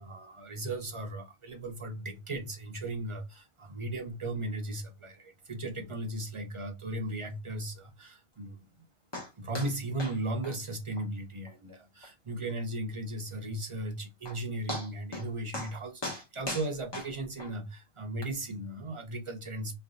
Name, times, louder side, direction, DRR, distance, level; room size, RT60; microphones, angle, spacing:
voice 1, 0.0-8.7 9.4-19.7, right 1 dB, 45° right, 0.4 m, -36 dB
sound 1, 9.1-9.3 9.5-9.7 10.0-10.2 10.4-10.5 11.0-11.1 11.5-11.6 12.0-12.1 13.8-13.9 14.3-14.4 14.7-15.3 15.5-15.7 16.0-17.5 18.2-18.3, left 1 dB, 25° left, 0.7 m, -38 dB
3.3 x 2.4 x 2.5 m
omnidirectional pair, 1.3 m